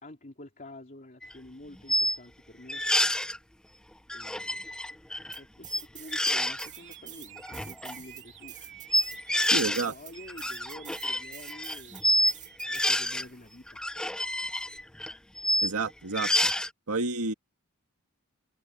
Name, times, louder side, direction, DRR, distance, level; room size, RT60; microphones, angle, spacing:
voice 1, 0.0-2.8 4.1-4.6 5.3-8.5 9.6-13.8, left 1 dB, 40° left, 3.2 m, -48 dB
sound 1, 1.2-1.3 1.9-2.2 2.7-3.4 4.1-5.4 5.6-5.8 6.1-6.7 7.4-7.9 8.9-9.9 10.2-12.3 12.6-13.3 13.7-15.7 16.1-16.7, left 1 dB, 5° left, 0.4 m, -28 dB
sound 2, 5.3-6.3 6.6-13.4, right 11 dB, 35° right, 2.3 m, -47 dB
sound 3, 5.7-5.9 6.1-9.5 10.1-12.8, right 9 dB, 55° right, 3.7 m, -51 dB
voice 2, 9.5-9.9 15.6-16.5 16.9-17.3, right 3 dB, 75° right, 2.0 m, -30 dB
head